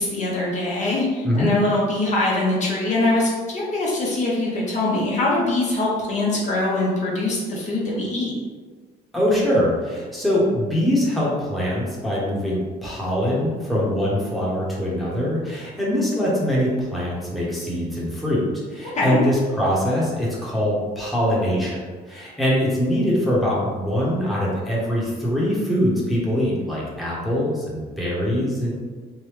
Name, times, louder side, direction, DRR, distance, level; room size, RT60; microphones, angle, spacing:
voice 1, 0.0-8.4 18.9-19.2, left 2 dB, 45° left, -4 dB, 0.7 m, -23 dB
voice 2, 9.1-18.4 18.7-21.8 22.1-28.7, equal, ahead, -7 dB, 0.9 m, -23 dB
3.3 x 2.1 x 3.1 m, 1.5 s
cardioid pair, 110°, 17 cm